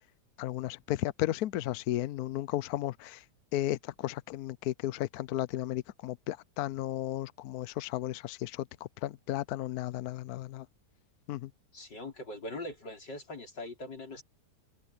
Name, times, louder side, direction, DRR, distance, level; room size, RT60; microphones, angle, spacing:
voice 1, 0.4-3.2 3.5-8.6 9.0-10.7 11.3-11.5, left 14 dB, 70° left, 1.0 m, -34 dB
voice 2, 11.7-14.2, left 2 dB, 90° left, 5.5 m, -41 dB
omnidirectional pair, 1.8 m